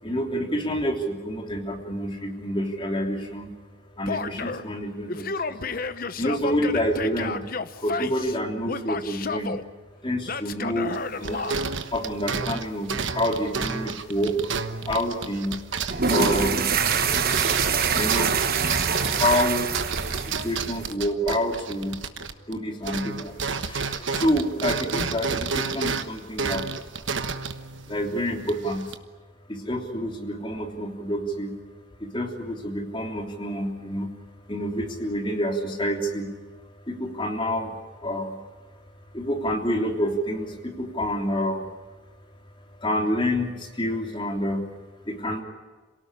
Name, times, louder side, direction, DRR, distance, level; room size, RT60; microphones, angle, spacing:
voice 1, 0.0-3.5 3.9-5.7 6.2-7.5 7.8-9.6 10.0-11.5 11.9-14.5 14.8-15.6 16.1-17.2 18.0-18.3 19.0-22.0 22.5-26.7 27.9-28.9 29.5-31.6 32.0-34.1 34.5-36.3 36.6-38.4 39.1-41.6 42.6-44.7 45.1-45.4, equal, 25° left, 2 dB, 3.3 m, -28 dB
Male speech man speaking / Yell, 4.1-4.7 5.1-8.4 8.7-9.6 10.3-11.6, left 4 dB, 45° left, 0.9 m, -31 dB
sound 1, 10.9-22.6 22.8-29.0, right 5 dB, 65° right, 1.3 m, -31 dB
sound 2, 15.9-20.9, right 5 dB, 45° right, 1.2 m, -25 dB
27.5 x 18.0 x 10.0 m, 1.3 s
head